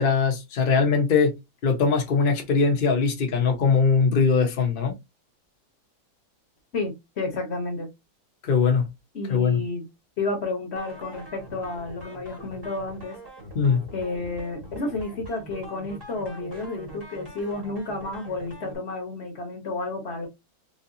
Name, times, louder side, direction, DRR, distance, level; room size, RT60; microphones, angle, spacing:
voice 1, 0.0-1.4 1.6-4.9 8.4-8.9 9.3-9.6 13.5-13.8, left 5 dB, 80° left, 0.4 m, -21 dB
voice 2, 6.7-7.9 9.1-9.8 10.2-13.2 13.9-20.3, left 3 dB, 45° left, 0.9 m, -31 dB
sound 1, 10.7-18.7, right 1 dB, 20° right, 0.6 m, -43 dB
3.7 x 2.7 x 2.6 m
omnidirectional pair, 2.2 m